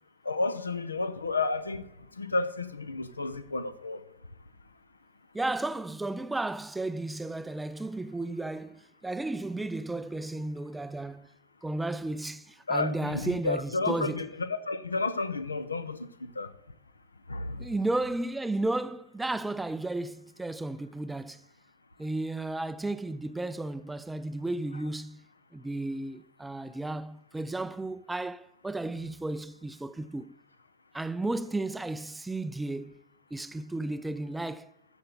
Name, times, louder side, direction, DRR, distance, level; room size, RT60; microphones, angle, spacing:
voice 1, 0.2-1.8 2.1-4.1 12.7-16.5 17.3-17.7, left 3 dB, 75° left, 0.7 m, -31 dB
voice 2, 5.3-11.3 11.6-14.3 17.6-21.5 22.0-25.3 25.5-30.4 30.9-33.0 33.3-34.7, right 2 dB, 5° right, 0.3 m, -33 dB
13.0 x 6.7 x 4.0 m
figure-of-eight pair, 90°, 0 cm